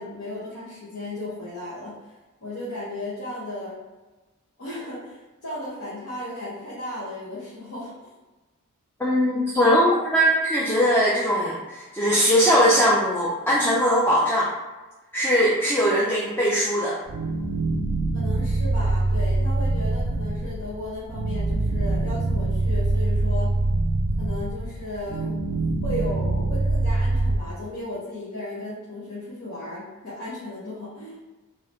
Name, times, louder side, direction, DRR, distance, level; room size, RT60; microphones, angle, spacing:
voice 1, 0.0-1.9 2.4-3.8 4.6-7.9 18.1-23.5 24.2-25.3 25.8-31.1, left 1 dB, 70° left, -9 dB, 1.0 m, -35 dB
voice 2, 9.0-14.5 15.1-17.0, equal, 10° left, -5 dB, 0.4 m, -20 dB
sound 1, 17.1-27.4, right 2 dB, 65° right, 0.4 m, -24 dB
3.4 x 2.7 x 3.0 m, 1.2 s
head